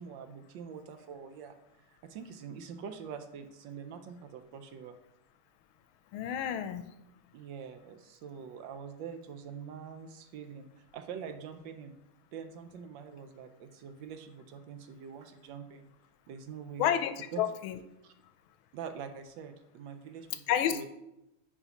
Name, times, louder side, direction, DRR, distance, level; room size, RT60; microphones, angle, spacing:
voice 1, 0.0-5.0 7.3-12.0 12.3-15.9 16.3-16.9 17.3-17.4 18.0-18.1 18.7-20.9, right 7 dB, 75° right, 8 dB, 1.2 m, -45 dB
voice 2, 6.1-6.9 16.8-17.8 20.5-20.9, left 10 dB, 85° left, 10 dB, 1.4 m, -30 dB
9.8 x 4.8 x 2.9 m, 0.88 s
omnidirectional pair, 2.2 m